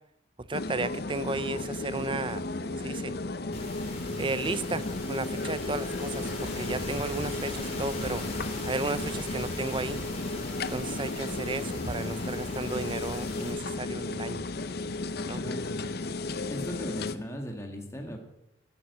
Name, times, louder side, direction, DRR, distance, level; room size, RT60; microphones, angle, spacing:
sound 1, 0.5-17.2, left 2 dB, 55° left, 0.7 m, -34 dB
voice 1, 0.5-3.1 4.2-8.2 8.6-10.0 10.7-14.4 15.3-15.4, right 3 dB, 25° right, 15 dB, 0.6 m, -34 dB
sound 2, 3.5-13.5, left 2 dB, 35° left, 4.0 m, -39 dB
voice 2, 15.4-15.7 16.3-18.2, equal, 15° left, 3 dB, 1.7 m, -38 dB
13.0 x 10.0 x 8.1 m, 0.84 s
head